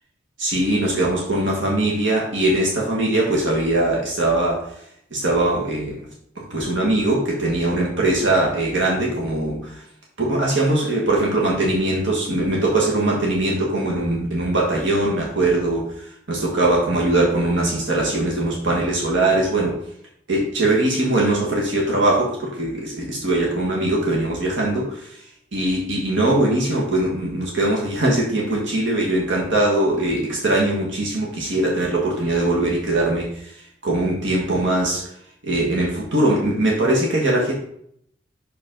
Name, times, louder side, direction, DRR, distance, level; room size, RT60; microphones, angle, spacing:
voice 1, 0.4-4.7 5.1-5.9 6.3-9.8 10.2-19.8 20.3-25.1 25.5-35.0 35.4-37.5, right 1 dB, 85° right, -3 dB, 1.5 m, -21 dB
6.1 x 4.8 x 3.8 m, 0.70 s
head